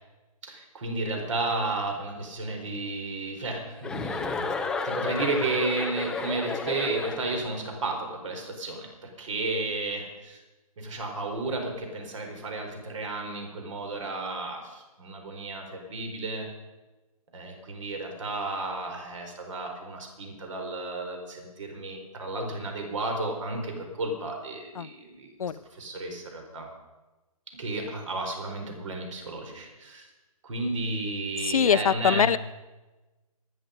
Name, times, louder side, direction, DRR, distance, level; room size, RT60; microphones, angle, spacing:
voice 1, 0.4-4.5 4.8-10.4 10.8-16.5 17.3-26.7 27.5-30.1 30.4-32.3, right 2 dB, 55° right, 3 dB, 4.6 m, -33 dB
Chuckle chortle, 3.8-7.6, left 4 dB, 5° left, 0.6 m, -32 dB
voice 2, 31.4-32.4, left 7 dB, 65° left, 16 dB, 0.6 m, -23 dB
25.5 x 9.9 x 5.2 m, 1.1 s
hypercardioid pair, 145°, 19 cm